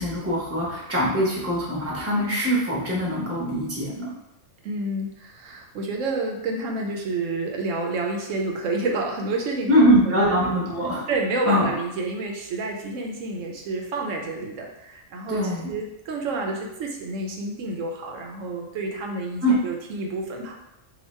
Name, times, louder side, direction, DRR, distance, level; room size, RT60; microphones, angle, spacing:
voice 1, 0.0-4.1 9.7-11.1 11.4-11.7 15.3-15.7 19.4-19.6, equal, 15° right, -5 dB, 0.8 m, -22 dB
voice 2, 4.6-10.2 10.5-10.6 11.1-15.4 15.7-20.6, right 2 dB, 90° right, 1 dB, 1.0 m, -29 dB
2.9 x 2.5 x 4.2 m, 0.84 s
omnidirectional pair, 1.3 m